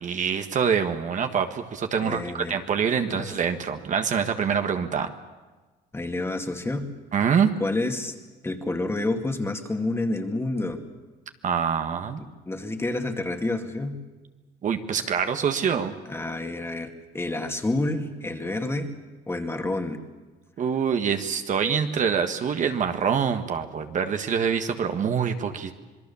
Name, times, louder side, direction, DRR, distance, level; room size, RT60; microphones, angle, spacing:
voice 1, 0.0-5.1 7.1-7.5 11.4-12.2 14.6-15.9 20.6-25.7, right 7 dB, 45° right, 7 dB, 1.6 m, -25 dB
voice 2, 2.0-2.5 3.1-3.3 5.9-6.9 7.6-8.2 8.4-10.8 12.2-14.0 16.1-19.0 19.3-20.0, left 2 dB, 15° left, 5 dB, 2.3 m, -29 dB
26.5 x 21.0 x 7.1 m, 1.3 s
cardioid pair, 110°, 17 cm